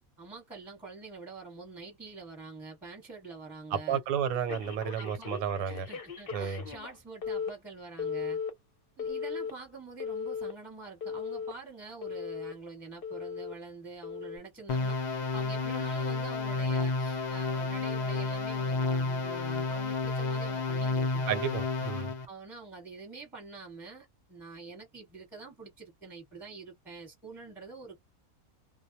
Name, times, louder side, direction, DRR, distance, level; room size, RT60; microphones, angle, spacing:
voice 1, 0.2-4.0 5.0-5.3 5.7-8.4 9.0-15.0 15.3-21.3 22.3-28.0, right 3 dB, ahead, 0.9 m, -46 dB
voice 2, 3.7-5.9 6.3-6.6 21.3-22.1, right 8 dB, 80° right, 1.1 m, -32 dB
Telephone, 4.5-6.9 7.2-7.5 8.0-8.5 9.0-9.5 10.0-10.5 11.0-11.5 12.0-12.5 13.0-13.5 14.0-14.4, left 6 dB, 50° left, 0.7 m, -36 dB
sound 1, 14.7-22.2, left 3 dB, 80° left, 0.4 m, -31 dB
2.2 x 2.1 x 2.7 m
omnidirectional pair, 1.5 m